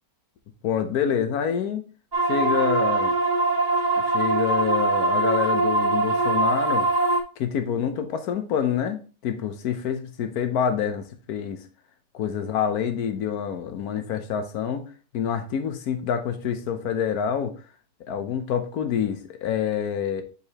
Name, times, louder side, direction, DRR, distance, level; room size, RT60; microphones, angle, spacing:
voice 1, 0.6-1.8 2.3-3.2 4.0-6.9 7.4-11.6 12.1-14.8 15.1-17.5 18.1-20.2, left 8 dB, 75° left, 1.3 m, -27 dB
sound 1, 2.1-7.2, right 2 dB, 20° right, 0.7 m, -22 dB
6.8 x 4.9 x 2.8 m
omnidirectional pair, 1.6 m